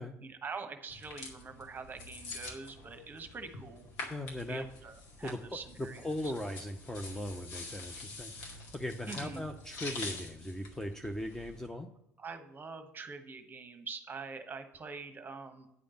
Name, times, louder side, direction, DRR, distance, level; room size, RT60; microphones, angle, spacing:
voice 1, 0.2-3.9 4.5-6.3 9.1-9.4 12.2-15.7, right 4 dB, 25° right, 7 dB, 1.2 m, -44 dB
sound 1, 0.9-11.7, left 3 dB, 55° left, 2.1 m, -46 dB
voice 2, 4.1-4.7 5.2-11.9, left 1 dB, 5° left, 5 dB, 0.7 m, -39 dB
9.4 x 5.1 x 7.2 m, 0.83 s
figure-of-eight pair, 60°, 8 cm